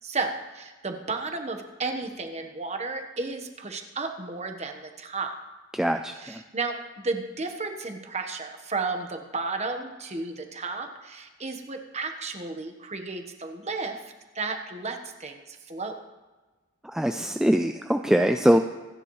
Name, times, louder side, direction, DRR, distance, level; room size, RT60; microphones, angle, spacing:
voice 1, 0.0-5.3 6.2-14.0 14.3-16.0, right 3 dB, 30° right, 5 dB, 1.2 m, -33 dB
voice 2, 5.7-6.4 16.9-18.6, equal, 5° right, 5 dB, 0.3 m, -22 dB
26.0 x 10.0 x 3.2 m, 1.2 s
head